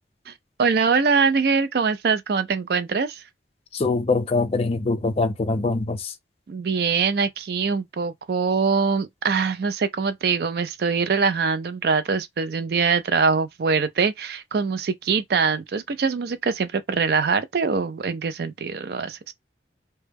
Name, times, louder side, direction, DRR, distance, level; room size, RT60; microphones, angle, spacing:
voice 1, 0.6-3.2 6.5-19.3, right 5 dB, 60° right, 0.4 m, -23 dB
voice 2, 3.7-6.1, left 3 dB, 35° left, 0.4 m, -23 dB
2.2 x 2.0 x 3.2 m
head